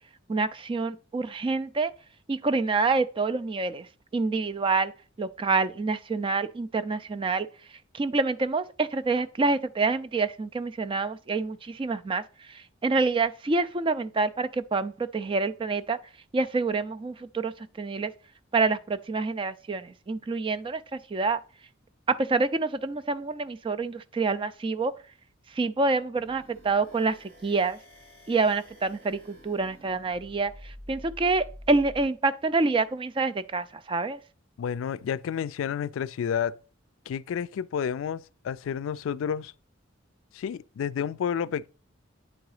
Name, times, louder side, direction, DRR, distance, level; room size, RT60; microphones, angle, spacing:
voice 1, 0.3-1.9 2.3-3.9 4.1-4.9 5.2-7.5 7.9-12.2 12.5-16.0 16.3-18.1 18.5-21.4 22.1-24.9 25.5-27.8 28.3-34.2, right 3 dB, 25° right, 0.3 m, -27 dB
sound 1, 26.1-32.1, equal, 60° right, 4.3 m, -48 dB
voice 2, 34.6-36.6 37.1-39.5 40.3-41.7, left 8 dB, 80° left, 0.3 m, -30 dB
8.8 x 3.9 x 4.8 m
head